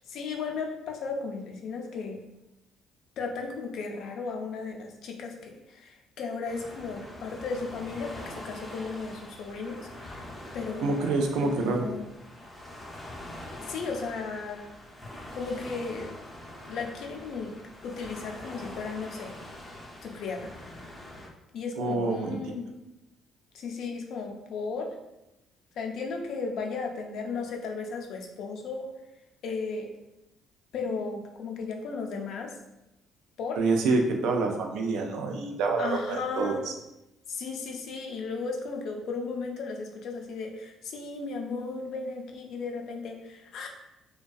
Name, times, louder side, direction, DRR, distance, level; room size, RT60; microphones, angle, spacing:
voice 1, 0.1-2.2 3.2-10.2 10.5-12.1 13.7-14.6 15.3-16.2 16.7-17.6 17.8-19.3 20.0-20.5 21.5-22.7 23.5-25.0 25.8-28.9 29.4-29.9 30.7-32.5 33.4-33.6 35.8-36.7 37.3-43.7, left 4 dB, 70° left, 2 dB, 0.4 m, -35 dB
Waves surf, 6.4-21.3, left 1 dB, 20° left, 0.5 m, -44 dB
voice 2, 10.8-11.9 21.8-22.5 33.6-36.6, right 3 dB, 85° right, 2 dB, 0.4 m, -27 dB
2.5 x 2.2 x 2.3 m, 0.92 s
cardioid pair, 85°, 0 cm